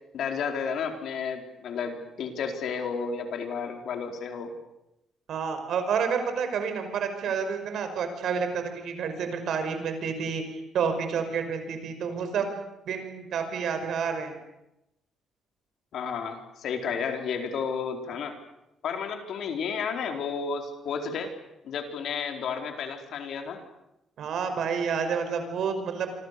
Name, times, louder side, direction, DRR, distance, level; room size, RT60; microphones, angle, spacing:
voice 1, 0.1-4.5 15.9-18.3 18.8-21.3 21.6-23.6, left 6 dB, 70° left, 4 dB, 4.4 m, -32 dB
voice 2, 5.3-10.4 10.7-12.6 12.9-14.4 24.2-26.1, right 6 dB, 70° right, 7 dB, 5.5 m, -29 dB
26.5 x 26.5 x 6.9 m, 0.90 s
cardioid pair, 90°, 0 cm